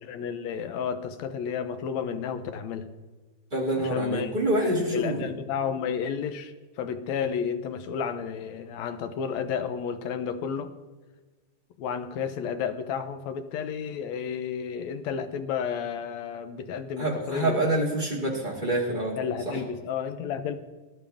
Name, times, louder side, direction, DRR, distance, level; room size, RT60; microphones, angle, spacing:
voice 1, 0.0-2.9 3.8-4.3 4.6-10.7 11.8-17.6 19.2-20.6, left 7 dB, 70° left, 8 dB, 2.0 m, -32 dB
voice 2, 3.5-5.2 17.0-19.2 19.5-19.6, right 1 dB, 15° right, -3 dB, 2.1 m, -26 dB
20.0 x 11.0 x 3.6 m, 1.2 s
omnidirectional pair, 3.5 m